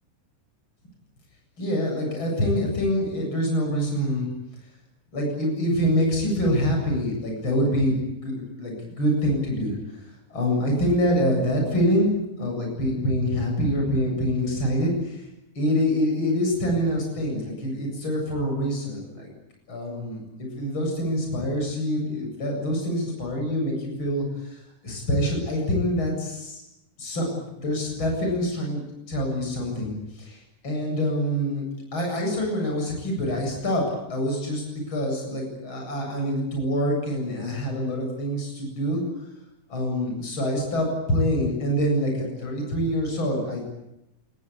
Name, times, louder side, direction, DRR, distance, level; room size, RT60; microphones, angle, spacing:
voice 1, 1.6-4.3 5.1-7.9 8.2-9.7 10.3-15.2 15.6-19.3 19.7-26.6 27.0-27.3 27.6-31.6 31.9-33.8 34.1-39.0 39.7-43.6, equal, 35° left, 1 dB, 8.6 m, -25 dB
28.0 x 21.0 x 8.6 m, 0.85 s
omnidirectional pair, 3.7 m